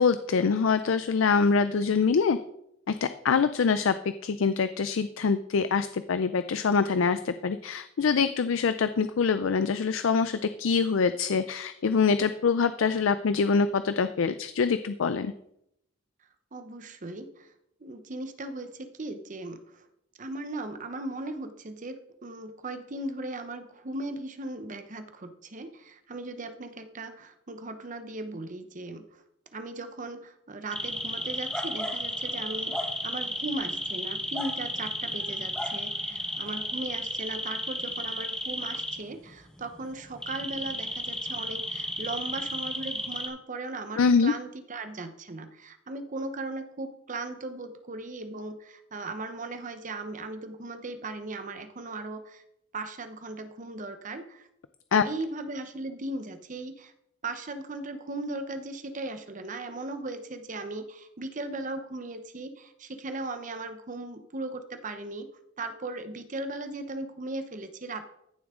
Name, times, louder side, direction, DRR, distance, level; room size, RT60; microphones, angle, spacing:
voice 1, 0.0-2.4 2.9-3.9 4.2-15.3 44.0-44.3 54.9-55.0, left 5 dB, 80° left, 12 dB, 0.4 m, -24 dB
voice 2, 16.5-17.5 17.8-19.8 20.2-29.2 29.5-52.4 52.7-54.5 55.0-56.9 57.2-65.3 65.6-68.1, right 2 dB, 40° right, 8 dB, 0.8 m, -37 dB
sound 1, 30.7-43.3, left 1 dB, 5° left, 1.4 m, -33 dB
15.0 x 7.1 x 3.7 m, 0.77 s
head